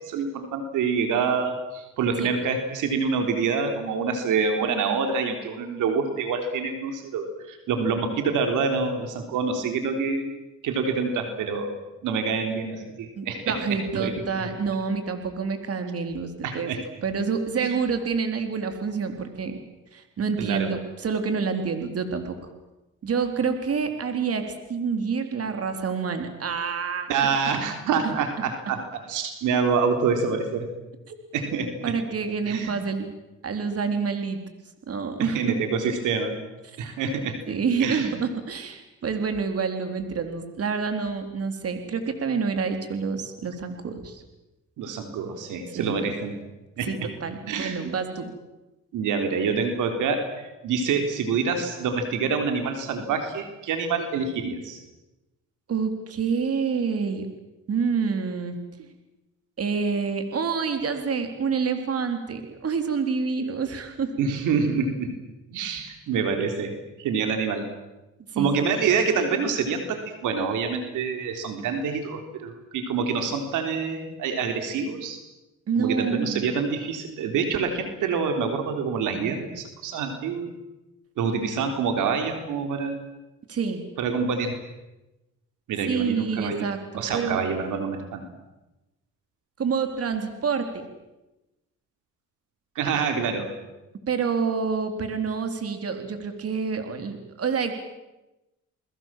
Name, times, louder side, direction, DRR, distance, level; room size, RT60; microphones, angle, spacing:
voice 1, 0.0-10.3 10.6-11.7 12.0-14.5 16.4-16.8 17.6-17.7 20.4-20.7 27.1-30.7 31.3-31.9 32.5-32.8 35.2-36.4 36.8-37.4 37.8-38.1 44.8-46.3 46.8-47.1 47.5-47.8 48.9-54.8 64.2-65.1 65.5-66.7 67.0-67.7 68.4-75.2 75.8-80.6 81.2-83.0 84.0-84.6 85.7-86.7 86.9-88.2 92.8-93.5, right 5 dB, 85° right, 6 dB, 3.7 m, -26 dB
voice 2, 13.2-16.7 17.0-19.6 19.9-22.4 23.0-24.4 24.7-27.1 28.0-28.1 31.8-33.1 33.4-34.4 34.9-35.4 36.7-36.8 37.5-44.2 45.7-46.0 46.9-48.3 55.7-57.3 57.7-58.6 59.6-64.1 68.3-68.7 75.7-76.5 83.5-83.8 85.9-87.4 89.6-90.8 94.1-97.7, right 5 dB, 50° right, 7 dB, 3.9 m, -27 dB
30.0 x 21.0 x 7.6 m, 1.0 s
cardioid pair, 90°, 30 cm